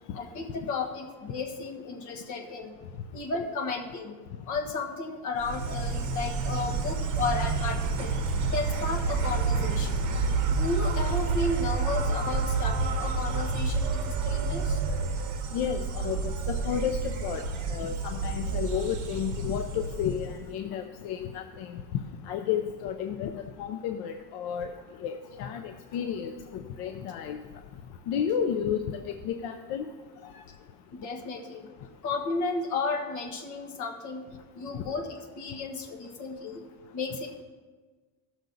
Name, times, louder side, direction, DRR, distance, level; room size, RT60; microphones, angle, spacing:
voice 1, 0.1-2.8 3.1-4.2 4.4-8.2 8.5-10.1 10.6-14.8 30.9-31.7 32.0-34.2 34.5-36.6 36.9-37.4, left 3 dB, 50° left, 3 dB, 1.4 m, -33 dB
Insect, 5.4-20.5, right 4 dB, 45° right, 1.1 m, -29 dB
voice 2, 15.5-17.4 17.7-21.8 22.3-24.7 25.0-27.4 28.1-29.9 30.3-30.4, left 8 dB, 70° left, 6 dB, 0.7 m, -32 dB
15.0 x 6.2 x 4.0 m, 1.4 s
cardioid pair, 160°, 39 cm